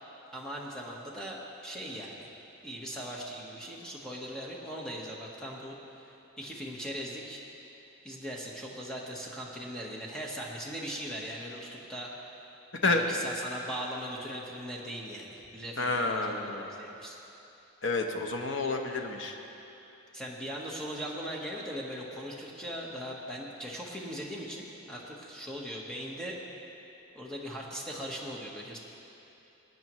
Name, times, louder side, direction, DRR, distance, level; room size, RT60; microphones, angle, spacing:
voice 1, 0.3-2.3 2.6-7.4 8.0-12.1 12.8-17.2 20.1-26.4 27.1-28.8, equal, 5° left, -3 dB, 1.2 m, -39 dB
voice 2, 15.8-16.7 17.8-19.4, left 3 dB, 60° left, 3 dB, 0.9 m, -29 dB
19.5 x 9.2 x 3.1 m, 3.0 s
head